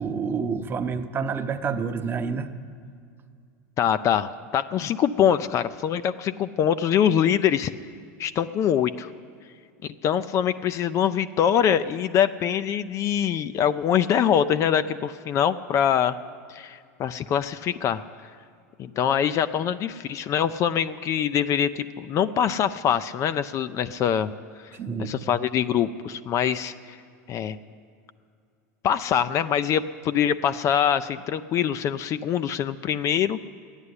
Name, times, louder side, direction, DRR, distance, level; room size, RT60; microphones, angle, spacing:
voice 1, 0.0-2.5 24.7-25.1, right 5 dB, 25° right, 7 dB, 0.9 m, -28 dB
voice 2, 3.8-7.7 8.2-9.1 10.0-16.2 16.5-18.0 18.8-24.3 25.0-27.0 27.3-27.6 28.8-33.5, left 9 dB, 40° left, 12 dB, 0.4 m, -24 dB
13.0 x 9.8 x 9.6 m, 2.2 s
supercardioid pair, 115°, 8 cm